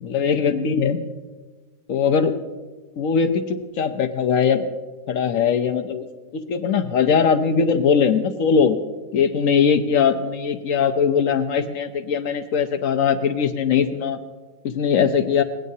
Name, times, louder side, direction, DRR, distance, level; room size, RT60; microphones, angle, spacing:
voice 1, 0.0-1.0 1.9-2.4 3.0-4.6 5.1-6.1 6.3-8.8 9.1-14.2 14.6-15.4, left 6 dB, 75° left, 8 dB, 1.2 m, -20 dB
20.5 x 17.0 x 2.8 m, 1.3 s
omnidirectional pair, 1.4 m